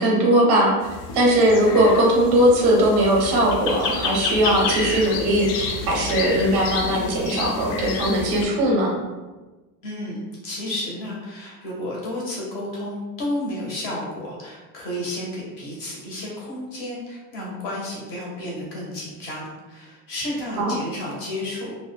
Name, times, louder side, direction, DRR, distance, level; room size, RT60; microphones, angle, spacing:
voice 1, 0.0-8.9 20.6-20.8, right 1 dB, 30° right, -2 dB, 0.5 m, -19 dB
sound 1, 0.8-8.5, left 4 dB, 85° left, 0.6 m, -30 dB
voice 2, 9.8-21.7, left 1 dB, 25° left, -4 dB, 0.4 m, -32 dB
2.4 x 2.0 x 3.1 m, 1.2 s
supercardioid pair, 175°, 45 cm